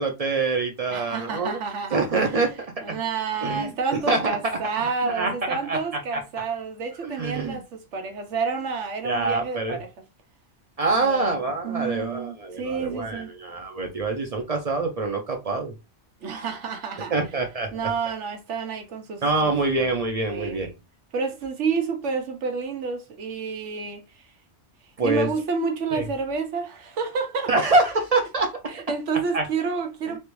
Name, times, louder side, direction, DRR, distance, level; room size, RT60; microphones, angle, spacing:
voice 1, 0.0-1.6 1.9-2.5 2.9-3.0 3.4-3.7 4.1-4.6 5.1-5.3 5.7-5.8 6.1-6.2 7.0-7.6 9.0-9.8 10.8-15.7 17.1-17.7 19.2-20.7 25.0-25.3 25.9-26.0 27.5-28.5 29.3-29.4 30.1-30.2, right 3 dB, 45° right, 0.5 m, -25 dB
voice 2, 0.9-2.1 2.3-2.4 2.8-9.9 11.0-13.3 16.2-17.1 17.7-19.6 20.3-20.6 21.1-24.2 25.0-27.6 28.7-30.2, right 5 dB, 85° right, 1.2 m, -29 dB
3.2 x 2.5 x 3.1 m
omnidirectional pair, 1.2 m